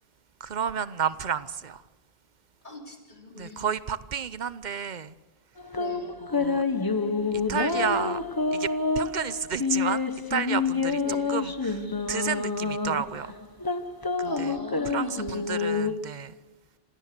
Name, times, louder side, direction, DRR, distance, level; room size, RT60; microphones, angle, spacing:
voice 1, 0.4-1.8 3.3-5.1 6.3-6.6 7.5-8.2 8.5-8.7 9.0-10.0 10.3-11.0 11.3-11.8 12.1-13.3 14.2-14.6 14.9-16.3, right 7 dB, 50° right, 0.9 m, -31 dB
voice 2, 2.6-3.7 5.7-6.1 11.0-11.2 14.2-15.9, equal, 45° left, 3.9 m, -42 dB
sound 1, 5.6-15.9, left 4 dB, 20° left, 1.0 m, -28 dB
26.5 x 17.5 x 6.8 m
omnidirectional pair, 1.1 m